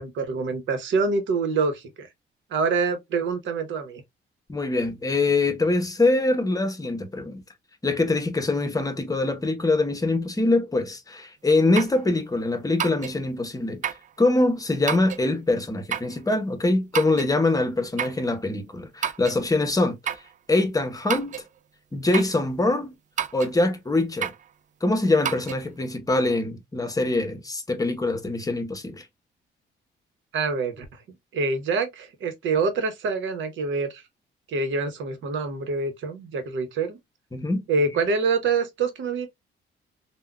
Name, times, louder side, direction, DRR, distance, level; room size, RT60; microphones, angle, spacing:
voice 1, 0.0-2.1 2.5-4.0 30.3-31.0 31.3-34.0 34.5-37.0 37.7-39.3, right 4 dB, 75° right, 0.9 m, -26 dB
voice 2, 4.5-7.4 7.8-13.8 14.2-20.0 20.5-21.3 21.9-23.0 23.3-24.3 24.8-29.0 37.3-37.6, left 2 dB, 15° left, 0.8 m, -24 dB
sound 1, 11.7-12.0 12.8-13.2 13.8-14.1 14.9-15.2 15.9-16.2 16.9-17.3 18.0-18.2 19.0-19.4 20.0-20.3 21.1-21.5 22.1-22.4 23.2-23.5 24.2-24.4 25.2-25.6, right 8 dB, 40° right, 0.4 m, -29 dB
3.5 x 2.2 x 2.3 m
cardioid pair, 90°, 20 cm